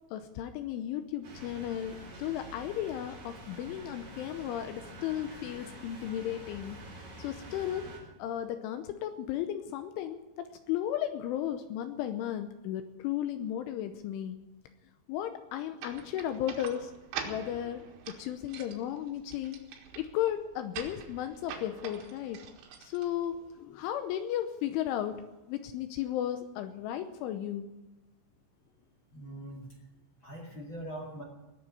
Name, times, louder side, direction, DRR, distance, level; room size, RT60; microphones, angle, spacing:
voice 1, 0.1-6.8 7.2-7.9 8.2-14.4 15.1-16.9 17.2-19.6 20.0-22.5 22.8-25.2 25.5-27.7, left 11 dB, 85° left, 8 dB, 3.2 m, -35 dB
sound 1, 1.2-8.0, right 1 dB, 45° right, 5.9 m, -47 dB
sound 2, 15.8-23.6, right 7 dB, 85° right, 4.3 m, -45 dB
voice 2, 29.1-29.7 30.2-31.2, right 1 dB, 40° left, 0 dB, 1.8 m, -42 dB
20.5 x 7.1 x 9.3 m, 1.1 s
omnidirectional pair, 5.7 m